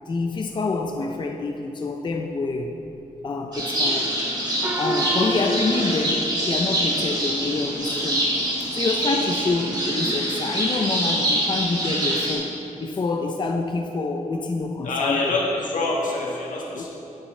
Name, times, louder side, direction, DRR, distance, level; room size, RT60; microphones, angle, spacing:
voice 1, 0.1-2.7 3.2-4.2 4.8-8.3 8.6-12.5 12.8-15.4 16.7-16.9, left 3 dB, 35° left, 2 dB, 0.5 m, -27 dB
sound 1, 3.5-12.3, equal, 35° right, 1.9 m, -25 dB
Gong, 4.6-7.5, right 2 dB, 15° right, 0.6 m, -30 dB
voice 2, 14.8-16.9, left 3 dB, 90° left, -3 dB, 1.6 m, -25 dB
9.2 x 9.0 x 3.2 m, 3.0 s
wide cardioid pair, 140°, 13 cm